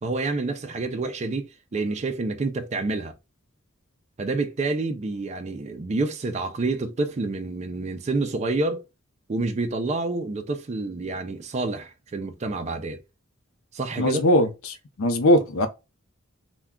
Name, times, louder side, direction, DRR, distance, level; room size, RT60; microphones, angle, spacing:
voice 1, 0.0-3.1 4.2-8.8 9.3-13.0 13.7-14.2, right 3 dB, 30° right, 0.3 m, -28 dB
voice 2, 14.0-15.7, left 1 dB, 75° left, 0.6 m, -21 dB
2.3 x 2.2 x 3.5 m
head